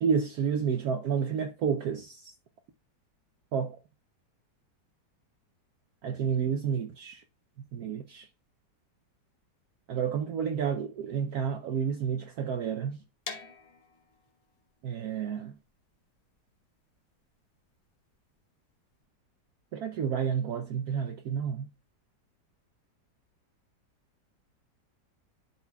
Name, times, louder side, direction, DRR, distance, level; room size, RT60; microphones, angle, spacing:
voice 1, 0.0-2.3 3.5-3.8 6.0-7.2 7.7-8.3 9.9-13.0 14.8-15.5 19.7-21.7, right 7 dB, 70° right, 1.0 m, -30 dB
sound 1, 13.2-19.0, left 4 dB, 35° left, 1.1 m, -48 dB
11.5 x 4.0 x 2.3 m
omnidirectional pair, 1.9 m